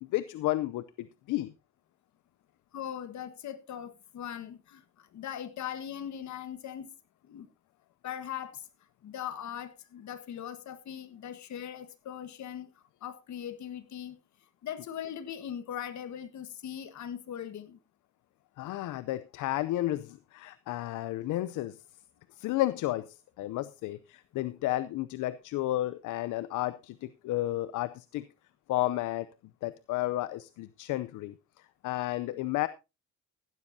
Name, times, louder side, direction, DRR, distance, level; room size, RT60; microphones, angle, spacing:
voice 1, 0.0-1.5 18.6-21.8 22.4-28.2 28.7-29.3 29.6-31.3 31.8-32.7, left 16 dB, 85° left, 0.6 m, -32 dB
voice 2, 2.7-6.9 7.3-7.5 8.0-8.7 9.0-12.7 13.0-14.2 14.6-17.8, left 9 dB, 70° left, 1.5 m, -40 dB
15.0 x 12.0 x 2.7 m
cardioid pair, 90°, 30 cm